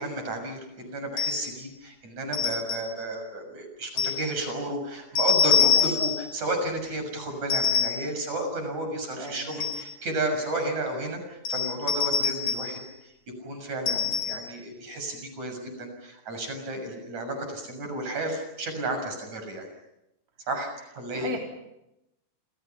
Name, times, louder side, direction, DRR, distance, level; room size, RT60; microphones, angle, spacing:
voice 1, 0.0-12.8 13.4-19.7 20.5-21.3, right 1 dB, 65° right, 5 dB, 8.0 m, -32 dB
sound 1, 1.2-1.6 2.3-3.0 4.0-4.3 5.2-6.3 7.5-8.1 9.3-9.9 11.4-12.8 13.9-14.6, left 6 dB, 75° left, 5.8 m, -25 dB
voice 2, 5.7-6.1 9.2-9.8 13.9-14.2 21.1-21.4, right 1 dB, 30° right, 0 dB, 4.5 m, -38 dB
30.0 x 28.0 x 5.9 m, 0.88 s
omnidirectional pair, 3.5 m